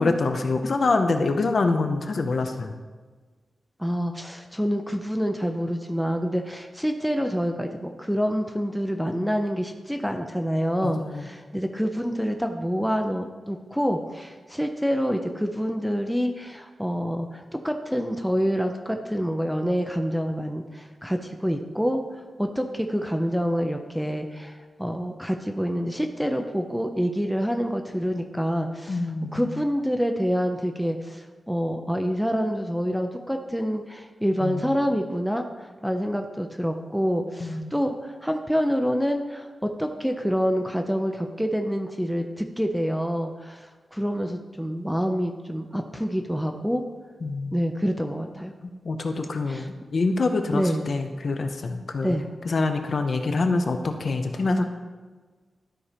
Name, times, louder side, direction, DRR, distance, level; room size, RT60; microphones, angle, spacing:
voice 1, 0.0-2.8 10.8-11.3 28.9-29.6 34.4-34.8 37.4-37.7 47.2-47.5 48.6-52.1 52.4-54.7, left 3 dB, 50° left, 6 dB, 0.7 m, -26 dB
voice 2, 3.8-29.0 29.3-46.8 47.5-48.5 49.5-49.7 50.5-50.9 52.0-52.2, equal, ahead, 4 dB, 0.5 m, -27 dB
12.5 x 4.3 x 5.1 m, 1.4 s
wide cardioid pair, 170°, 0 cm